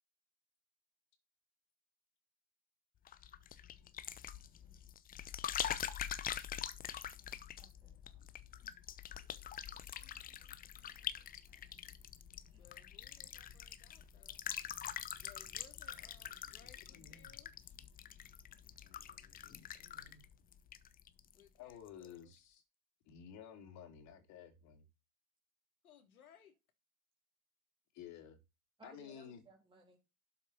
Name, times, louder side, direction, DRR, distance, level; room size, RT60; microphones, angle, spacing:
sound 1, 3.1-21.4 21.7-22.1, left 10 dB, 20° left, 0.9 m, -45 dB
voice 1, 7.6-8.1 10.2-10.3 12.5-12.7 15.8-15.9 28.8-30.0, right 3 dB, 10° right, 3.2 m, -63 dB
voice 2, 12.6-14.4 15.2-17.5 21.3-22.3 25.8-26.5, left 8 dB, 70° left, 3.2 m, -64 dB
voice 3, 16.6-17.3 18.6-20.2 21.6-22.6 23.1-24.8 27.9-28.4 28.8-29.4, left 8 dB, 40° left, 3.4 m, -54 dB
12.0 x 6.2 x 4.2 m
figure-of-eight pair, 95°, 45 cm